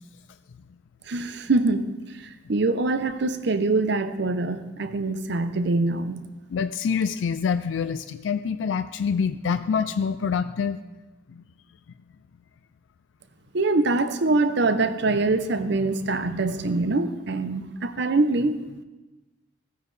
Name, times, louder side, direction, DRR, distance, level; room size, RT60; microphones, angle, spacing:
voice 1, 1.1-1.9 2.5-6.3 13.5-18.6, right 3 dB, 65° right, 11 dB, 0.7 m, -24 dB
voice 2, 6.5-10.8 11.3-11.4, left 6 dB, 80° left, 11 dB, 0.4 m, -26 dB
15.5 x 9.2 x 3.3 m, 1.1 s
head